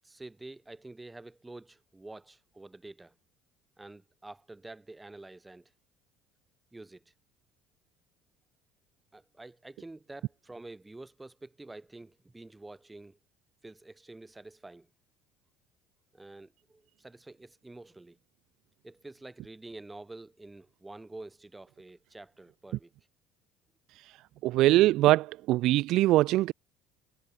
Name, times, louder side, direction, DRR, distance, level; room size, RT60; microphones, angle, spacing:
voice 1, 0.0-3.1 3.8-5.7 6.7-7.1 9.1-13.2 13.6-14.9 16.1-18.2 18.8-22.9, right 2 dB, 10° right, 1.4 m, -48 dB
voice 2, 24.4-26.5, right 16 dB, 60° right, 0.5 m, -22 dB
cardioid pair, 130°, 0 cm